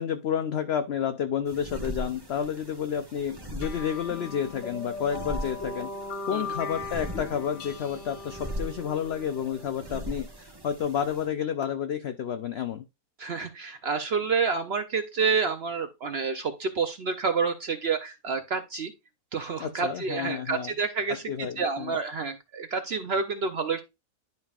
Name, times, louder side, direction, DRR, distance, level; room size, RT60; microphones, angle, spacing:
voice 1, 0.0-5.9 6.3-12.8 19.6-20.7 21.1-22.0, left 8 dB, 80° left, 0.5 m, -30 dB
sound 1, 1.5-11.3, right 1 dB, 20° right, 0.7 m, -40 dB
sound 2, 3.6-10.5, left 3 dB, 50° left, 1.4 m, -39 dB
voice 2, 13.2-18.9 19.3-23.8, right 5 dB, 60° right, 0.6 m, -29 dB
10.5 x 5.3 x 2.4 m
omnidirectional pair, 1.7 m